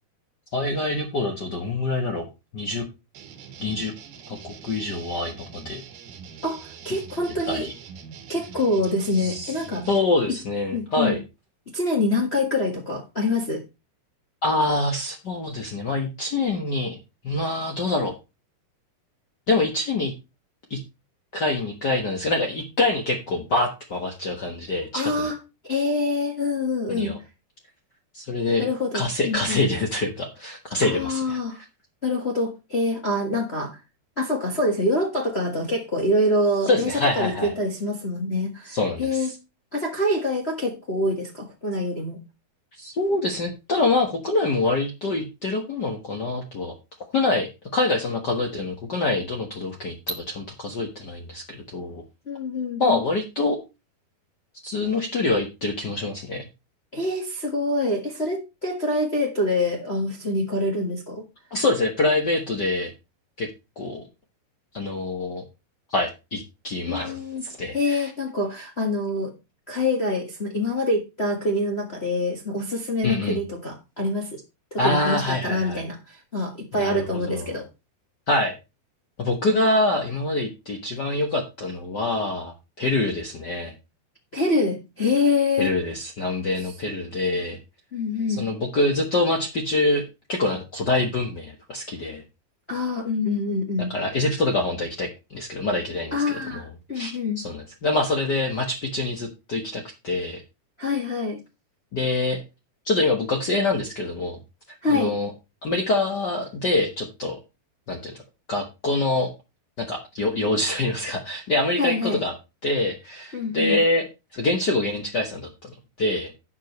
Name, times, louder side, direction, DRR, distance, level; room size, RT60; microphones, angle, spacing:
voice 1, 0.5-2.3 2.5-2.8 3.6-3.9 4.3-5.8 7.5-7.7 9.1-9.5 9.9-11.2 14.4-17.0 17.2-18.1 19.5-20.1 20.7-20.8 21.3-25.3 26.9-27.2 28.1-28.7 28.9-31.4 36.7-37.5 38.7-39.3 42.8-46.7 47.1-52.0 52.8-53.6 54.6-56.4 61.5-62.9 63.4-63.5 63.8-64.0 64.7-65.4 65.9-68.1 73.0-73.4 74.8-75.8 76.7-77.5 78.3-78.5 79.2-83.7 85.6-87.6 88.3-90.0 90.3-92.2 93.9-96.6 96.9-100.4 101.9-102.4 102.8-104.4 104.9-105.3 105.6-107.4 107.9-108.1 108.5-109.3 109.8-112.3 112.6-114.1 114.3-115.7 116.0-116.3, left 2 dB, 85° left, 0.9 m, -25 dB
sound 1, 3.2-10.0, right 6 dB, 85° right, 3.5 m, -43 dB
voice 2, 6.4-7.7 8.3-9.9 10.3-10.4 10.7-11.2 11.7-13.6 24.9-25.4 25.6-27.1 28.6-29.6 30.8-31.6 32.0-33.8 34.2-39.3 39.7-42.2 52.3-53.0 56.9-61.2 66.9-67.4 67.7-69.3 69.7-74.4 74.7-77.6 84.3-85.8 87.9-88.4 92.7-93.9 96.1-97.4 100.8-101.4 104.8-105.1 111.8-112.2 113.3-113.8, left 2 dB, 70° left, 0.6 m, -25 dB
12.0 x 7.6 x 3.1 m
omnidirectional pair, 4.3 m